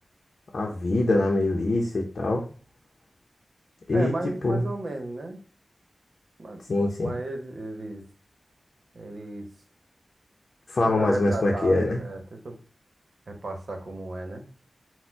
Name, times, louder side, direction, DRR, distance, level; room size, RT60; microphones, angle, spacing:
voice 1, 0.5-2.4 3.9-4.1 4.4-4.6 6.7-7.1 10.7-12.0, left 2 dB, 70° left, -1 dB, 0.7 m, -23 dB
voice 2, 3.9-5.4 6.4-8.0 8.9-9.5 10.8-12.6 13.3-14.4, right 2 dB, 65° right, 4 dB, 1.0 m, -34 dB
4.2 x 2.2 x 4.4 m, 0.38 s
wide cardioid pair, 70°, 0 cm